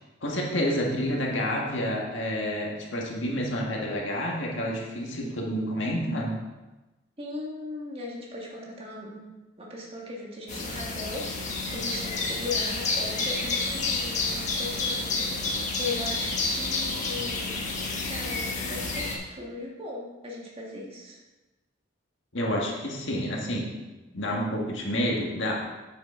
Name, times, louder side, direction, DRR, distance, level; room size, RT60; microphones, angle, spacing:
voice 1, 0.2-6.4 22.3-23.7 24.1-25.6, equal, 70° left, -2 dB, 1.7 m, -29 dB
voice 2, 7.2-17.6 18.0-21.2, left 2 dB, 30° right, -3 dB, 1.8 m, -38 dB
sound 1, 10.5-19.2, left 3 dB, 40° left, 1.3 m, -29 dB
9.0 x 7.0 x 3.8 m, 1.1 s
head